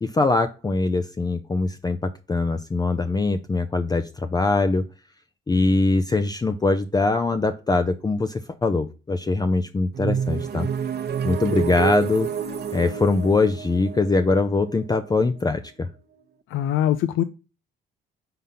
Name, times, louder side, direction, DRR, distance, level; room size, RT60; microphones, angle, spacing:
voice 1, 0.0-4.8 5.5-10.7 11.2-12.3 12.7-15.9, left 3 dB, 20° left, 0.5 m, -22 dB
sound 1, 9.9-15.7, right 7 dB, 55° right, 0.9 m, -29 dB
voice 2, 16.5-17.2, left 11 dB, 90° left, 0.4 m, -22 dB
5.6 x 3.6 x 5.5 m
cardioid pair, 90°, 20 cm